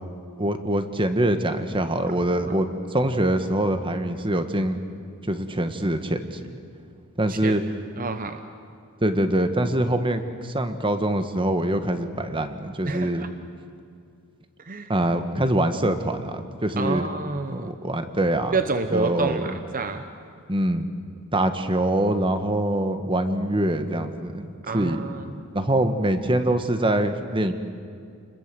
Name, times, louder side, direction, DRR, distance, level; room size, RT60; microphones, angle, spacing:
voice 1, 0.4-2.7 2.9-4.8 5.2-6.6 7.2-7.6 9.0-13.2 14.9-17.1 17.5-18.5 18.9-19.6 20.5-20.9 21.3-25.0 25.5-27.5, right 1 dB, 25° right, 8 dB, 1.5 m, -24 dB
voice 2, 8.0-8.4 12.8-13.3 14.6-14.9 16.8-17.7 18.5-20.0 24.6-25.4, right 3 dB, 40° right, 8 dB, 0.9 m, -28 dB
30.0 x 21.5 x 7.7 m, 2.3 s
head